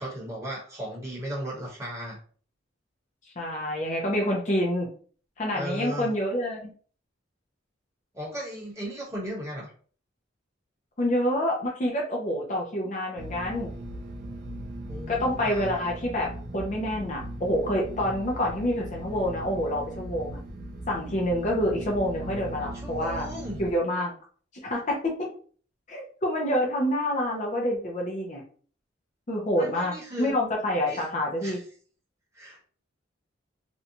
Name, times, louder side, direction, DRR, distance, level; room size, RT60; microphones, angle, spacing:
voice 1, 0.0-2.2 5.5-6.1 8.1-9.7 14.9-15.7 22.5-23.6 29.5-30.3 30.9-31.0 31.4-31.6 32.3-32.6, equal, 15° right, -5 dB, 1.0 m, -36 dB
voice 2, 3.4-4.9 5.4-6.7 11.0-13.7 15.1-20.4 20.9-23.3 23.6-24.1 24.6-25.3 25.9-28.4 29.3-31.6, left 1 dB, 35° left, -1 dB, 0.5 m, -27 dB
sound 1, 13.2-23.7, right 1 dB, 45° right, 0.3 m, -38 dB
2.6 x 2.2 x 2.8 m, 0.43 s
head